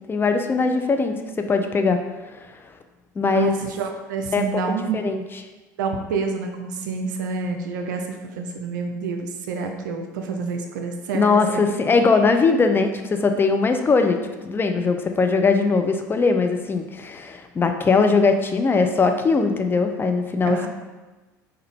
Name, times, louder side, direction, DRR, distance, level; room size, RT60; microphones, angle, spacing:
voice 1, 0.1-2.0 2.3-2.5 3.2-3.6 4.3-4.5 4.9-5.2 11.1-20.7, left 4 dB, 20° left, 6 dB, 0.3 m, -20 dB
voice 2, 3.3-5.0 5.8-11.6 20.4-20.7, right 4 dB, 75° right, 4 dB, 0.4 m, -28 dB
3.6 x 2.2 x 3.3 m, 1.2 s
hypercardioid pair, 75°, 10 cm